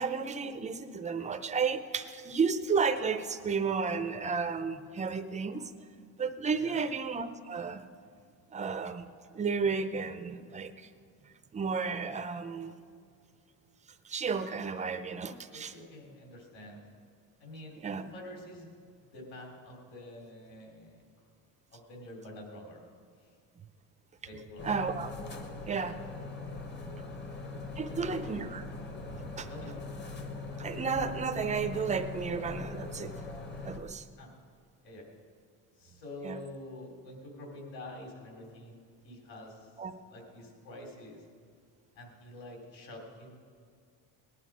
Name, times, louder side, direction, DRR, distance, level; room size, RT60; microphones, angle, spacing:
voice 1, 0.0-5.7 6.2-7.9 8.5-9.1 9.3-10.9 11.5-12.7 14.0-15.7 17.8-18.0 24.6-25.1 25.7-26.0 27.8-28.6 29.1-29.5 30.6-33.1 33.6-34.0 36.2-36.4 39.8-39.9, right 5 dB, 20° right, 9 dB, 0.5 m, -32 dB
voice 2, 15.5-16.8 17.4-18.7 19.0-21.0 21.7-22.8 23.2-23.3 24.2-24.7 27.0-27.2 27.7-28.4 29.5-29.7 34.2-34.3 34.8-35.1 35.8-39.7 40.1-41.2 42.0-43.4, left 1 dB, 55° left, 1 dB, 3.6 m, -47 dB
sound 1, 24.6-33.8, left 3 dB, 25° left, 1.0 m, -41 dB
19.0 x 11.0 x 5.0 m, 2.2 s
cardioid pair, 165°, 40 cm